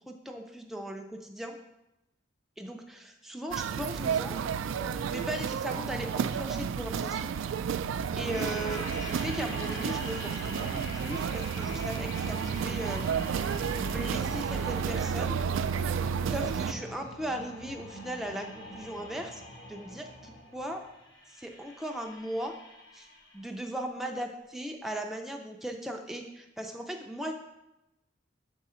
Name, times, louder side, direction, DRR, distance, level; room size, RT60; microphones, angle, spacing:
voice 1, 0.1-1.6 2.6-4.4 5.1-7.3 8.2-13.1 13.7-15.5 16.3-19.4 19.7-20.8 21.3-22.5 22.9-23.1 23.3-27.3, equal, ahead, 2 dB, 0.4 m, -38 dB
sound 1, 3.5-16.7, right 7 dB, 90° right, 0.3 m, -31 dB
sound 2, 8.3-23.6, equal, 60° left, 1.0 m, -45 dB
6.8 x 3.6 x 4.3 m, 0.93 s
head